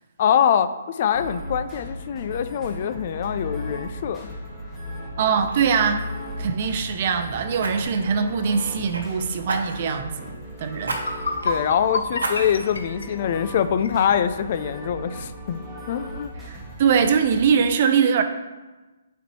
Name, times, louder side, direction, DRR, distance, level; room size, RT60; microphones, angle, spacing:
voice 1, 0.2-4.3 11.4-15.6 15.9-16.3, left 8 dB, 45° left, 11 dB, 0.3 m, -24 dB
sound 1, 1.1-17.5, equal, 5° left, 1.5 m, -37 dB
Fire, 4.9-5.1 5.5-5.7 7.6-9.0 9.5-10.0 10.8-11.0 11.4-11.5 12.2-12.8 13.3-13.4, right 3 dB, 85° right, 1.1 m, -31 dB
voice 2, 5.2-6.1 6.4-10.3 10.6-11.0 16.5-18.2, right 6 dB, 45° right, 8 dB, 0.6 m, -22 dB
sound 2, 10.5-10.6 10.9-14.0, left 3 dB, 80° left, 0.9 m, -29 dB
8.1 x 4.3 x 3.1 m, 1.2 s
hypercardioid pair, 145°, 0 cm